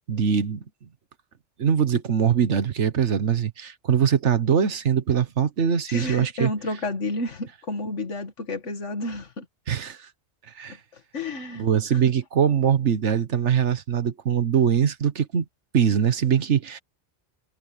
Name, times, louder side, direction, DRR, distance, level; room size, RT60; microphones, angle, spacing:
voice 1, 0.1-0.9 1.6-6.5 9.7-10.1 10.5-10.8 11.6-15.4 15.7-16.8, right 8 dB, 75° right, 1.5 m, -22 dB
voice 2, 5.9-9.5 10.7-12.0, left 2 dB, 90° left, 2.2 m, -31 dB
omnidirectional pair, 1.2 m